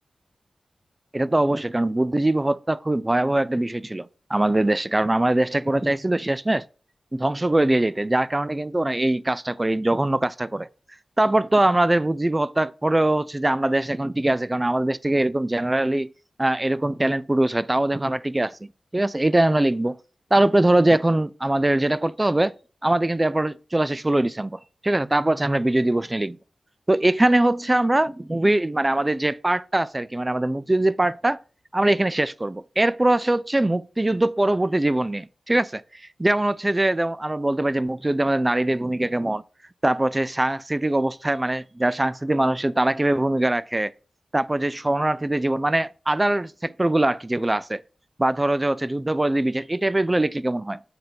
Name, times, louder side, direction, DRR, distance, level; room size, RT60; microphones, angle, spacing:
voice 1, 1.1-6.6 7.1-10.7 11.2-16.1 16.4-18.6 18.9-20.0 20.3-22.5 22.8-26.4 26.9-31.4 31.7-39.4 39.8-43.9 44.3-47.8 48.2-50.8, right 1 dB, 20° right, 0.3 m, -22 dB
8.0 x 3.8 x 5.1 m
wide cardioid pair, 95°, 0 cm